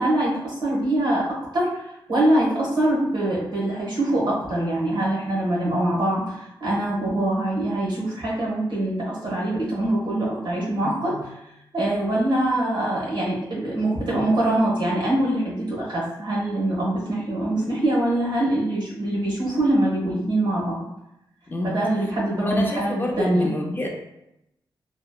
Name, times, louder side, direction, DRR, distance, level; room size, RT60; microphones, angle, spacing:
voice 1, 0.0-11.3 11.7-20.8 21.6-23.5, right 1 dB, 70° right, -4 dB, 1.0 m, -24 dB
voice 2, 10.8-11.2 21.5-21.8 22.4-23.9, left 1 dB, 25° left, -1 dB, 0.4 m, -28 dB
2.9 x 2.0 x 2.2 m, 0.84 s
wide cardioid pair, 95°, 8 cm